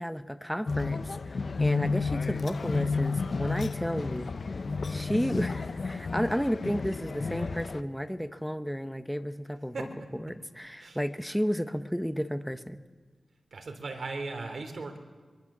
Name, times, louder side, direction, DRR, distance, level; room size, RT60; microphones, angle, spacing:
voice 1, 0.0-4.4 4.9-9.9 10.1-12.8, equal, ahead, 10 dB, 1.0 m, -32 dB
sound 1, 0.7-7.8, left 4 dB, 55° left, 0.8 m, -31 dB
voice 2, 13.5-15.0, right 3 dB, 65° right, 5 dB, 3.1 m, -37 dB
23.5 x 23.5 x 7.4 m, 1.5 s
wide cardioid pair, 90°, 0 cm